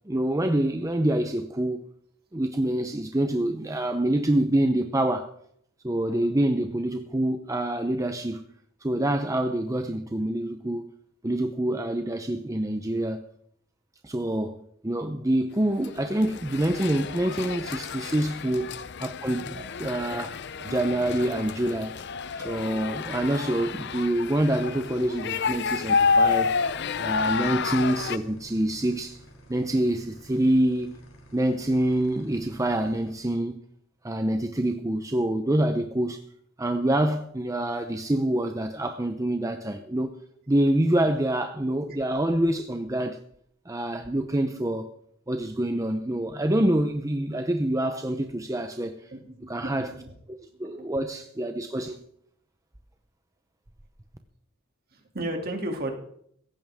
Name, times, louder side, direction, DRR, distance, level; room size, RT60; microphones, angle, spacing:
voice 1, 0.1-1.9 2.3-5.3 5.8-8.4 8.8-10.9 11.2-13.2 14.0-18.7 19.0-20.3 20.6-22.0 22.4-26.7 27.0-29.2 29.5-30.9 31.3-33.6 34.0-36.2 36.6-40.2 40.5-43.2 43.7-44.9 45.3-49.1 49.5-49.9 50.6-52.0, right 1 dB, 15° right, 0.7 m, -26 dB
sound 1, 15.8-28.2, left 5 dB, 55° left, 0.7 m, -29 dB
sound 2, 25.5-33.1, left 1 dB, 85° left, 3.2 m, -51 dB
voice 2, 49.1-50.1 50.6-50.9 54.9-55.9, right 1 dB, 50° right, 2.8 m, -35 dB
16.5 x 15.0 x 3.6 m
head